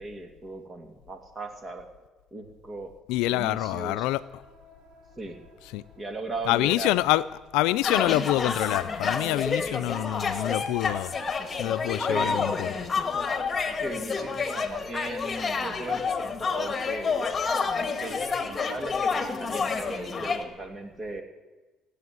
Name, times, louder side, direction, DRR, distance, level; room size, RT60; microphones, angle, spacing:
voice 1, 0.0-1.9 2.3-2.9 3.3-4.1 5.2-5.4 6.0-6.9 10.6-10.7 12.1-12.4 13.8-17.3 18.0-21.2, right 2 dB, 30° right, 5 dB, 2.7 m, -37 dB
voice 2, 3.1-4.2 5.7-5.8 6.5-7.2 7.5-11.1 11.6-12.8, left 17 dB, 85° left, 16 dB, 0.4 m, -26 dB
sound 1, 3.8-9.7, right 1 dB, 80° right, 3.8 m, -57 dB
sound 2, 7.8-20.4, left 5 dB, 30° left, 1.8 m, -29 dB
17.0 x 8.3 x 9.5 m, 1.2 s
supercardioid pair, 90°, 0 cm